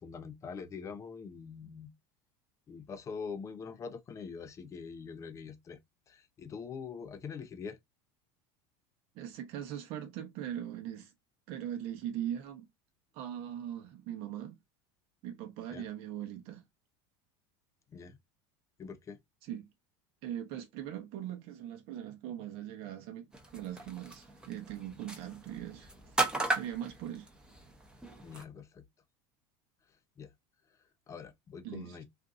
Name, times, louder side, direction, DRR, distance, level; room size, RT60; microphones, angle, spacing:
voice 1, 0.0-1.9 2.7-5.8 6.1-7.8 15.7-15.9 17.9-18.2 18.8-19.2 28.2-28.8 30.2-30.3 31.1-32.0, left 5 dB, 25° left, 0.6 m, -44 dB
voice 2, 9.1-11.1 11.5-12.7 13.1-14.6 15.2-16.6 19.4-19.7 20.2-25.9 26.5-27.3 31.6-32.0, right 11 dB, 55° right, 0.8 m, -40 dB
sound 1, 23.3-28.4, right 2 dB, 5° right, 0.8 m, -37 dB
2.7 x 2.5 x 3.6 m
supercardioid pair, 140°, 12 cm